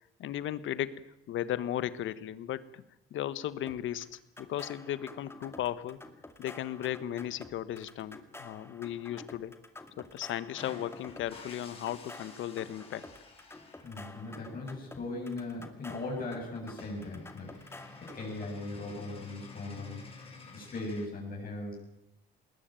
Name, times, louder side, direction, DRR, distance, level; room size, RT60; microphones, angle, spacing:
voice 1, 0.2-2.8 3.1-6.0 6.4-9.5 10.0-13.1, left 12 dB, 70° left, 15 dB, 1.4 m, -36 dB
sound 1, 3.7-18.5, left 2 dB, 10° left, 2.2 m, -50 dB
sound 2, 10.5-14.1 15.7-15.8 16.0-16.2 16.5-16.6 16.7-21.1, left 3 dB, 30° left, 6.0 m, -50 dB
voice 2, 13.8-17.5 18.0-20.0 20.5-21.8, left 2 dB, 45° left, -2 dB, 7.5 m, -39 dB
20.0 x 20.0 x 9.0 m, 0.80 s
cardioid pair, 115°, 21 cm